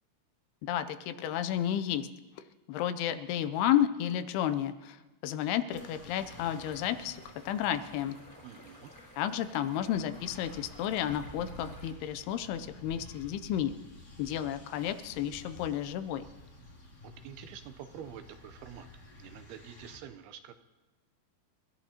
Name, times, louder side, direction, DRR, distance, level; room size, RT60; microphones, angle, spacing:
voice 1, 0.7-2.1 2.7-8.2 9.2-13.7 14.2-16.2, left 10 dB, 80° left, 10 dB, 2.5 m, -32 dB
sound 1, 5.7-20.0, left 1 dB, 40° left, 1.6 m, -52 dB
sound 2, 6.2-11.9, left 1 dB, 20° left, 2.6 m, -54 dB
voice 2, 8.4-8.9 17.0-18.9 19.2-20.5, right 9 dB, 80° right, 9 dB, 2.5 m, -47 dB
30.0 x 14.0 x 2.9 m, 1.2 s
omnidirectional pair, 4.8 m